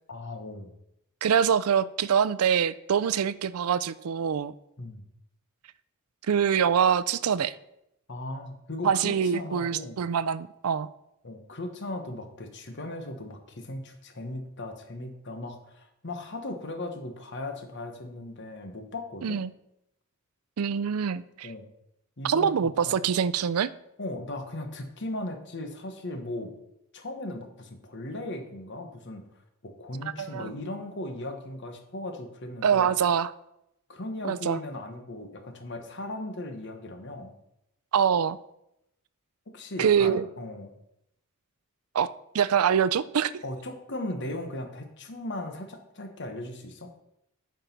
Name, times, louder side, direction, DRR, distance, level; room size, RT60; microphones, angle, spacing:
voice 1, 0.1-0.7 4.8-5.0 8.1-10.0 11.2-19.4 21.4-21.7 22.2-23.0 24.0-26.5 26.9-29.2 29.6-32.9 33.9-37.4 39.5-40.7 43.4-46.9, left 1 dB, 55° left, 6 dB, 1.3 m, -37 dB
voice 2, 1.2-4.5 6.2-7.5 8.8-10.9 19.2-19.5 20.6-21.5 22.2-23.7 30.2-30.5 32.6-33.3 34.3-34.6 37.9-38.4 39.8-40.2 41.9-43.4, right 7 dB, 85° right, 17 dB, 0.4 m, -24 dB
9.3 x 5.1 x 5.8 m, 0.82 s
head